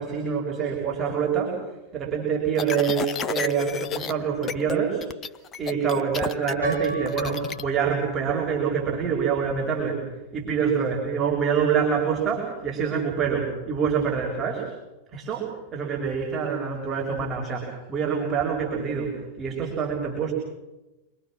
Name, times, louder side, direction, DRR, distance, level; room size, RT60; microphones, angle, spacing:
voice 1, 0.0-5.1 5.6-14.7 15.1-20.3, right 6 dB, 25° right, -1 dB, 6.3 m, -26 dB
sound 1, 2.6-4.1 4.4-4.8 5.0-7.6, left 7 dB, 25° left, 1.1 m, -31 dB
Piano, 6.6-8.6, right 3 dB, 90° right, 5.9 m, -31 dB
28.5 x 23.0 x 6.2 m, 1.0 s
figure-of-eight pair, 90°, 0 cm